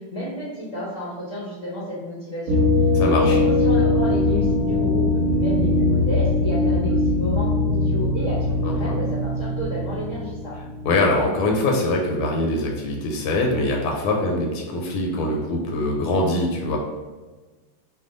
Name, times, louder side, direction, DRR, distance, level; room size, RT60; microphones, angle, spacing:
voice 1, 0.0-2.6 3.0-10.5, equal, 70° left, -8 dB, 0.7 m, -31 dB
sound 1, 2.5-11.1, left 2 dB, 45° right, 1.0 m, -21 dB
voice 2, 2.9-3.4 8.6-9.0 10.8-16.8, left 2 dB, 85° left, 0 dB, 1.5 m, -23 dB
3.4 x 2.2 x 3.7 m, 1.3 s
omnidirectional pair, 2.4 m